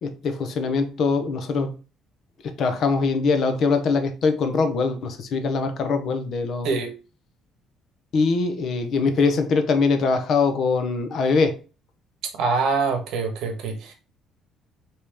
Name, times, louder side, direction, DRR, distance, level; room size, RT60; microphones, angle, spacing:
voice 1, 0.0-1.7 2.6-6.7 8.1-11.6, left 4 dB, 40° left, 0.7 m, -22 dB
voice 2, 12.3-13.9, right 4 dB, 65° right, 1.2 m, -24 dB
5.0 x 3.0 x 3.4 m
cardioid pair, 175°, 0 cm